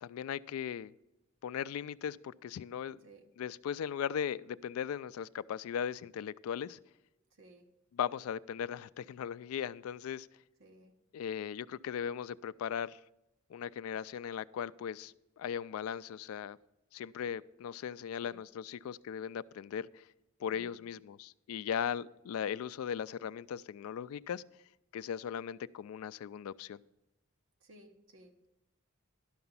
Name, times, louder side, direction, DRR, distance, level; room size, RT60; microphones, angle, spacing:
voice 1, 0.0-0.9 1.4-3.0 3.4-6.8 8.0-10.3 11.1-13.0 13.5-16.6 16.9-20.0 20.4-24.4 24.9-26.8, left 8 dB, 85° left, 0.3 m, -38 dB
voice 2, 7.3-7.7 10.6-11.0 18.2-18.4 20.5-20.8 27.6-28.5, right 1 dB, 65° right, 1.1 m, -58 dB
12.0 x 5.9 x 5.5 m
head